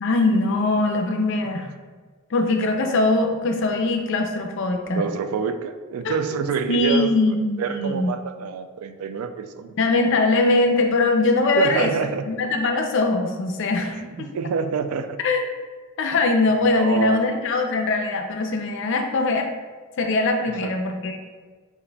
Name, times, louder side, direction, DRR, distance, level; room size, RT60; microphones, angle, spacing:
voice 1, 0.0-1.7 2.3-5.0 6.0-6.2 6.7-8.1 9.8-11.9 12.2-14.3 15.2-15.4 16.0-19.5 20.0-21.2, left 2 dB, 55° left, 4 dB, 0.4 m, -21 dB
voice 2, 4.9-9.7 11.6-12.2 13.9-15.2 16.1-16.3 16.7-17.2 20.6-20.8, right 6 dB, 80° right, 9 dB, 0.3 m, -27 dB
6.3 x 2.5 x 2.2 m, 1.4 s
head